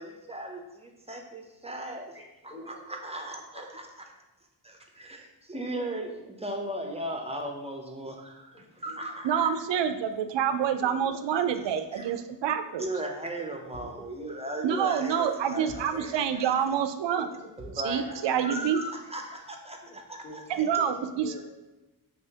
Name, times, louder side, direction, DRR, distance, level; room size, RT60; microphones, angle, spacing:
voice 1, 0.0-2.1 2.9-3.8 4.6-9.5 11.9-12.1 12.8-16.6 17.6-20.7, right 1 dB, 15° right, 2 dB, 0.6 m, -37 dB
voice 2, 2.1-3.7 8.5-9.1 10.8-11.3 13.7-14.4 14.6-15.3 17.2-18.7 19.8-21.5, equal, 15° left, -3 dB, 1.2 m, -47 dB
voice 3, 9.2-12.8 14.6-17.3 17.8-18.8 20.6-21.5, right 8 dB, 70° right, 9 dB, 0.5 m, -27 dB
sound 1, 13.7-14.2 15.7-16.1 17.6-18.0, equal, 70° left, 1.5 m, -47 dB
5.4 x 3.0 x 2.8 m, 1.0 s
cardioid pair, 80°, 45 cm